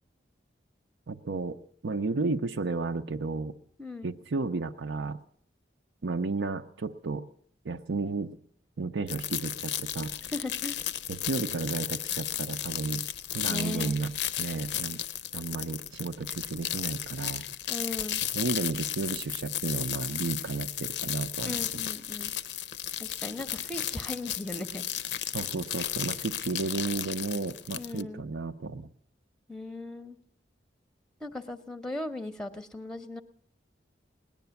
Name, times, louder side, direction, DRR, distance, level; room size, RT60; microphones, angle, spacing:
voice 1, 1.1-3.5 4.0-5.2 6.0-7.3 7.6-8.4 8.8-10.1 11.1-13.0 13.3-14.1 14.4-15.0 15.3-17.4 18.3-21.8 25.3-28.9, right 3 dB, 90° right, 4 dB, 0.6 m, -33 dB
sound 1, 9.1-28.0, left 11 dB, 80° left, 0.6 m, -34 dB
voice 2, 10.3-10.8 13.5-13.9 17.7-18.2 21.5-22.3 23.0-24.8 27.8-28.2 29.5-30.2 31.2-33.2, left 2 dB, 5° left, 10 dB, 0.6 m, -37 dB
19.0 x 10.5 x 6.9 m, 0.64 s
head